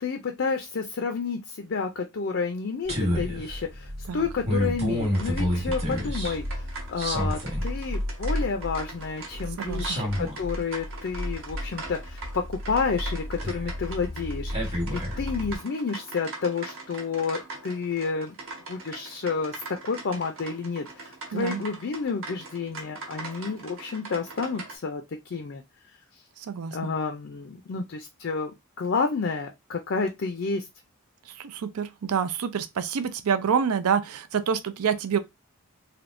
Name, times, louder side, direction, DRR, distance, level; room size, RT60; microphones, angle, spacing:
voice 1, 0.0-18.3 18.7-25.6 26.1-26.2 26.7-28.5 28.8-30.6, left 5 dB, 50° left, 0.4 m, -30 dB
sound 1, 2.9-15.5, equal, 30° right, 1.1 m, -30 dB
sound 2, 5.1-24.8, right 3 dB, 60° right, 1.1 m, -42 dB
voice 2, 9.6-10.0 21.3-21.6 26.4-26.9 31.3-35.2, right 7 dB, 80° right, 0.4 m, -27 dB
3.4 x 2.7 x 2.5 m
head